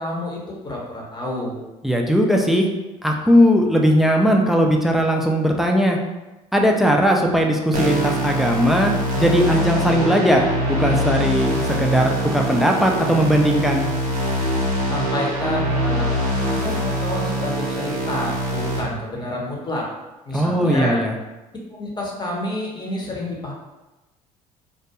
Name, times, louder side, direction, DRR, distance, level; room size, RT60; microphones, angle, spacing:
voice 1, 0.0-1.6 14.9-19.9 20.2-21.0 21.7-23.5, left 1 dB, 25° left, -2 dB, 0.8 m, -29 dB
voice 2, 1.8-2.7 3.0-6.0 6.5-13.9 20.3-21.1, equal, ahead, 1 dB, 0.4 m, -18 dB
sound 1, 7.7-18.8, equal, 85° right, 0.6 m, -23 dB
2.3 x 2.1 x 2.8 m, 1.1 s
hypercardioid pair, 60°, 19 cm